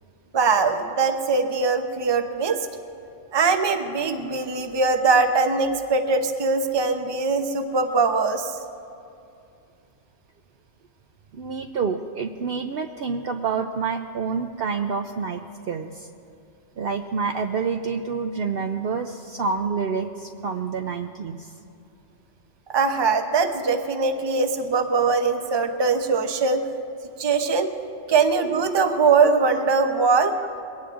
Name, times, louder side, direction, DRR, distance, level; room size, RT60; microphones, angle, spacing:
voice 1, 0.3-2.7 3.3-8.6 22.7-26.6 27.2-27.7 28.1-30.3, right 4 dB, 25° right, 6 dB, 0.6 m, -21 dB
voice 2, 11.3-15.4 15.7-16.1 16.8-21.5, right 5 dB, 60° right, 5 dB, 0.7 m, -28 dB
22.0 x 18.0 x 2.5 m, 2.5 s
omnidirectional pair, 1.3 m